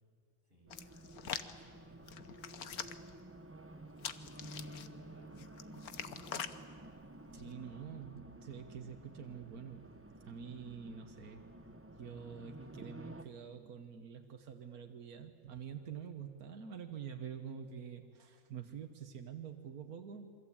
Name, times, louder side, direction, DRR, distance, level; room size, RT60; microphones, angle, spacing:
Hands, 0.7-1.5 2.1-3.1 4.0-4.9 5.4-6.6 7.3-7.5, left 8 dB, 90° left, 1.5 m, -43 dB
Race car auto racing, 0.7-13.2, right 1 dB, 10° right, 0.9 m, -52 dB
voice 1, 1.4-3.5 4.3-6.3, equal, 35° right, -2 dB, 7.3 m, -64 dB
voice 2, 7.3-9.9 10.2-11.4 12.0-20.3, right 7 dB, 90° right, 6 dB, 1.7 m, -47 dB
27.5 x 24.5 x 8.7 m, 2.3 s
omnidirectional pair, 1.5 m